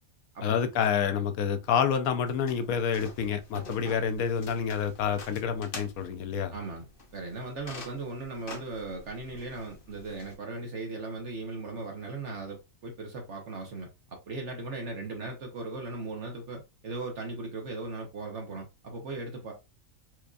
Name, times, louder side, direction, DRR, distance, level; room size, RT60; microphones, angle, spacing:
voice 1, 0.4-6.5, left 7 dB, 90° left, 1.1 m, -28 dB
sound 1, 2.3-10.3, left 2 dB, 45° left, 0.9 m, -47 dB
voice 2, 6.5-6.8 7.1-19.5, right 3 dB, 60° right, 1.1 m, -38 dB
4.5 x 2.5 x 2.4 m
omnidirectional pair, 1.5 m